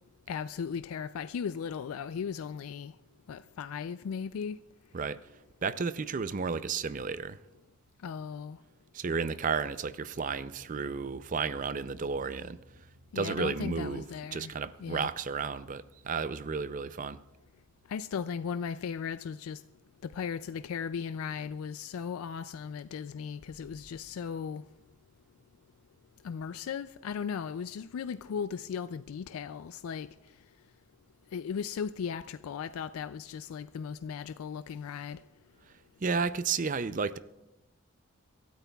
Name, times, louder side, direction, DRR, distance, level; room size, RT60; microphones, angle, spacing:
voice 1, 0.3-3.0 3.3-4.6 8.0-8.6 13.1-14.5 14.8-15.1 17.9-19.6 20.0-24.7 26.2-30.1 31.3-35.2, left 6 dB, 90° left, 0.3 m, -37 dB
voice 2, 5.6-7.4 8.9-12.6 13.2-14.1 14.3-17.2 36.0-37.2, right 5 dB, 40° right, 0.4 m, -32 dB
sound 1, 17.7-18.5 23.4-24.1, equal, 70° right, 3.7 m, -62 dB
26.0 x 12.5 x 2.3 m
head